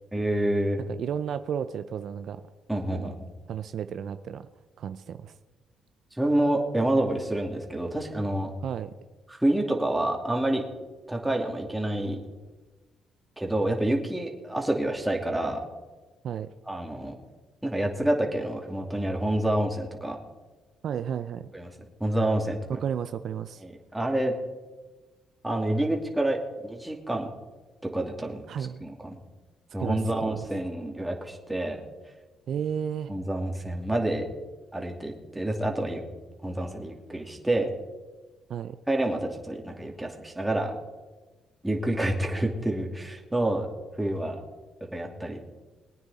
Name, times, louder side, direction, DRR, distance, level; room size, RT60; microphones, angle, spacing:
voice 1, 0.1-0.8 2.7-3.1 6.1-8.5 9.3-10.6 11.1-12.2 13.4-15.6 16.7-17.1 17.6-20.2 21.5-21.7 22.0-22.8 23.6-24.3 25.4-27.3 27.9-29.2 29.7-31.8 33.1-34.2 34.7-36.0 36.4-37.7 38.9-40.7 41.6-43.7 44.0-44.4 44.9-45.4, right 1 dB, 10° right, 1 dB, 2.6 m, -28 dB
voice 2, 0.8-2.4 2.9-3.1 3.5-4.5 4.8-5.4 8.6-8.9 16.2-16.5 20.8-21.5 22.7-23.6 28.5-28.9 29.8-30.4 32.5-33.1 38.5-38.8, right 8 dB, 65° right, 11 dB, 0.5 m, -33 dB
22.0 x 9.3 x 4.2 m, 1.2 s
cardioid pair, 90°, 0 cm